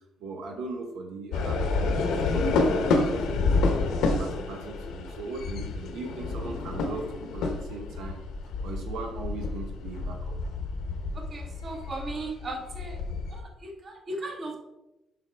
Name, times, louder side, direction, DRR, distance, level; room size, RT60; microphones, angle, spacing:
voice 1, 0.0-3.7 4.0-8.2 8.6-10.4, right 3 dB, 80° right, 3 dB, 0.9 m, -39 dB
sound 1, 1.3-13.4, left 3 dB, 85° left, 0.9 m, -29 dB
voice 2, 11.1-13.0 13.3-14.6, right 2 dB, 35° right, 1 dB, 1.3 m, -37 dB
7.0 x 5.2 x 3.4 m, 0.96 s
cardioid pair, 135°, 0 cm